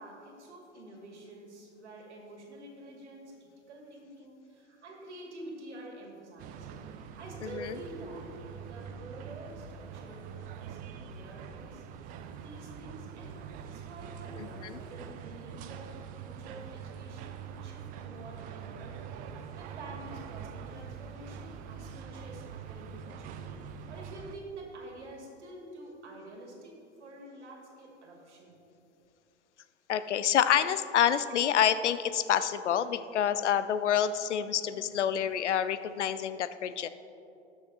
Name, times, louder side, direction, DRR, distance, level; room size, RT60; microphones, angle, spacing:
voice 1, 0.0-3.3 3.7-6.7 7.0-8.3 8.6-28.6 34.7-34.9, right 1 dB, 65° right, -1 dB, 2.3 m, -48 dB
sound 1, 6.4-24.3, right 7 dB, 25° right, 0.4 m, -44 dB
voice 2, 14.4-14.8 29.9-36.9, left 9 dB, 70° left, 13 dB, 0.5 m, -28 dB
18.5 x 6.4 x 2.8 m, 2.8 s
figure-of-eight pair, 85°, 36 cm